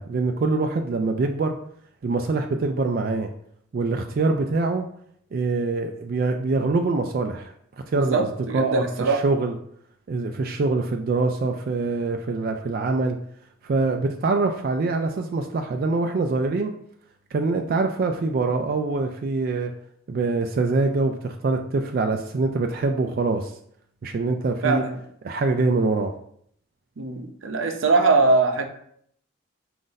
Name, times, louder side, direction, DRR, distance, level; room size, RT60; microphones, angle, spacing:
voice 1, 0.0-1.6 2.0-3.3 3.7-4.9 5.3-7.5 7.9-8.3 8.5-9.5 10.1-13.2 13.6-16.7 17.3-19.7 20.1-23.5 24.0-24.8 25.2-26.1, right 3 dB, 50° right, 4 dB, 0.3 m, -24 dB
voice 2, 7.9-9.2 24.6-25.0 27.0-28.7, right 3 dB, 80° right, 5 dB, 0.6 m, -22 dB
5.0 x 2.5 x 3.9 m, 0.67 s
head